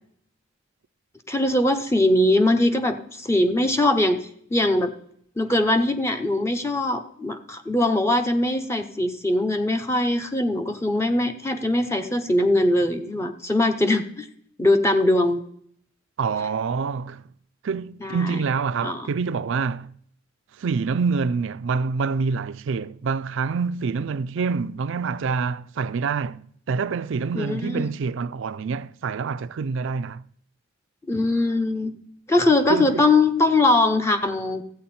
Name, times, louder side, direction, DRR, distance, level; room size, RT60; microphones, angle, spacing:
voice 1, 1.3-4.2 4.5-4.9 5.4-14.3 14.6-15.4 18.0-18.4 18.8-19.1 27.3-27.9 31.1-31.9 32.3-34.6, left 2 dB, 15° left, 0.7 m, -21 dB
voice 2, 16.2-17.2 17.6-19.9 20.6-30.2 32.7-33.0, right 5 dB, 65° right, 0.4 m, -26 dB
13.5 x 8.5 x 4.2 m
head